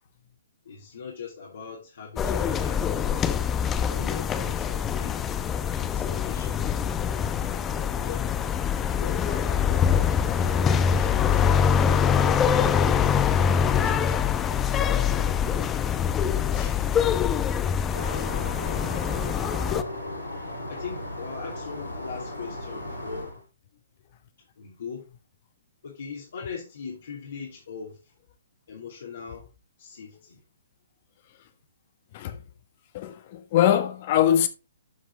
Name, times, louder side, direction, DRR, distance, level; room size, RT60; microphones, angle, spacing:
voice 1, 0.6-3.3 3.8-5.3 5.8-6.8 7.5-8.4 9.0-14.2 14.7-15.8 16.5-17.3 17.9-18.7 20.7-23.4 24.6-25.1 25.8-28.1 28.7-29.5 29.8-30.4, left 6 dB, 60° left, 2.8 m, -41 dB
sound 1, 2.2-19.8, left 8 dB, 15° left, 0.7 m, -24 dB
sound 2, 17.9-23.4, left 1 dB, 85° left, 6.2 m, -36 dB
voice 2, 32.9-34.5, left 10 dB, 40° left, 1.4 m, -23 dB
12.0 x 5.2 x 3.8 m
figure-of-eight pair, 130°, 0 cm